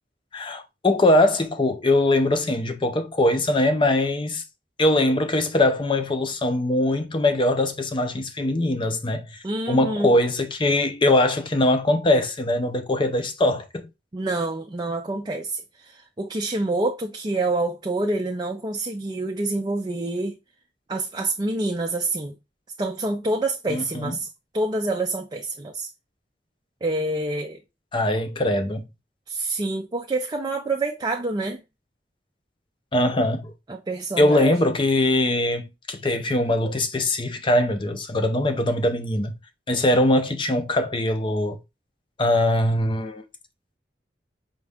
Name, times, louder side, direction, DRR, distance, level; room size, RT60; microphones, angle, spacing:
voice 1, 0.3-4.4 4.8-9.4 9.7-13.9 23.7-24.1 27.9-28.9 32.9-33.5 34.2-39.3 39.7-41.6 42.2-43.2, left 1 dB, 30° left, 0.6 m, -22 dB
voice 2, 9.4-10.1 14.1-20.4 20.9-22.4 22.8-24.3 24.5-25.9 26.8-27.6 29.3-31.6 33.7-34.6, right 2 dB, 25° right, 0.5 m, -27 dB
5.3 x 2.4 x 3.4 m
head